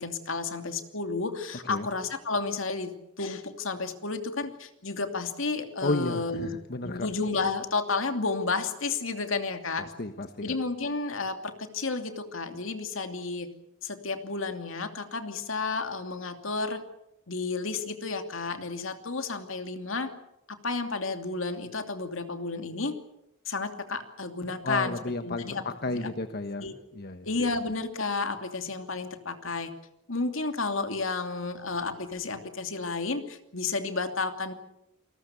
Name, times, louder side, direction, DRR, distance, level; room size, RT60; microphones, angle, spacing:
voice 1, 0.0-6.5 6.8-9.9 10.4-13.5 13.8-16.8 17.3-20.1 20.5-22.9 23.4-26.1 26.6-26.7 27.2-29.7 30.1-34.5, left 3 dB, 65° left, 6 dB, 2.7 m, -32 dB
voice 2, 5.8-7.1 9.8-10.6 24.6-26.6 26.9-27.3, left 2 dB, 50° left, 8 dB, 1.2 m, -32 dB
29.0 x 20.0 x 7.0 m, 0.85 s
head